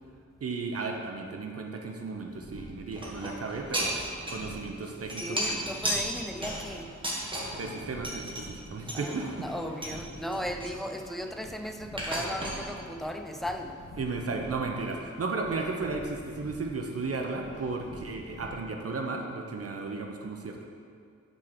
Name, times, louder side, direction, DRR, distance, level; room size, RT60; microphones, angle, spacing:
voice 1, 0.4-4.0 4.3-5.7 7.5-9.5 14.0-20.6, right 3 dB, 55° right, 2 dB, 0.6 m, -34 dB
sound 1, 2.3-18.5, left 1 dB, 80° left, 1.9 m, -48 dB
sound 2, 2.9-4.6 4.8-7.7 8.0-8.4 8.9-10.0 10.3-11.5 12.0-12.6, right 1 dB, 15° right, 1.3 m, -34 dB
voice 2, 5.2-7.0 8.9-13.9, equal, ahead, 5 dB, 0.3 m, -37 dB
6.2 x 4.4 x 6.4 m, 2.3 s
wide cardioid pair, 130°, 29 cm